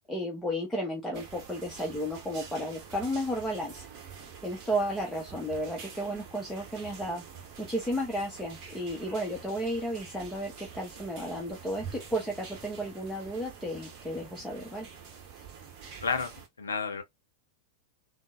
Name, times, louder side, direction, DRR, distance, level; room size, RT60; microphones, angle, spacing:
voice 1, 0.1-3.9 4.4-7.2 7.6-14.9, equal, 5° left, 0.7 m, -33 dB
sound 1, 1.1-16.5, right 6 dB, 40° right, 0.9 m, -47 dB
voice 2, 16.0-16.3 16.6-17.0, left 5 dB, 70° left, 0.6 m, -30 dB
3.7 x 2.0 x 2.4 m
figure-of-eight pair, 90°, 0 cm